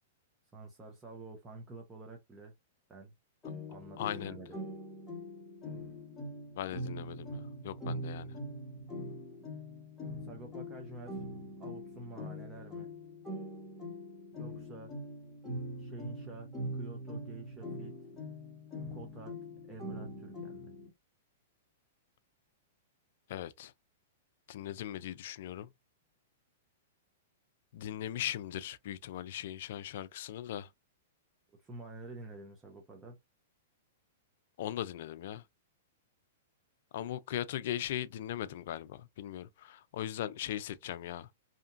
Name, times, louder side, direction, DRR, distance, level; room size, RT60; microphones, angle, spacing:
voice 1, 0.5-2.5 2.9-3.1 3.7-4.6 10.2-11.2 11.6-12.9 14.3-14.9 15.8-17.9 18.9-19.4 19.7-20.7 31.5-33.2, right 2 dB, 15° right, 0.7 m, -48 dB
sound 1, 3.4-20.9, equal, 10° left, 1.2 m, -42 dB
voice 2, 4.0-4.4 6.6-8.3 23.3-23.7 24.5-25.7 27.7-30.7 34.6-35.4 36.9-41.3, left 11 dB, 65° left, 0.3 m, -39 dB
2.8 x 2.5 x 2.4 m
hypercardioid pair, 130°, 0 cm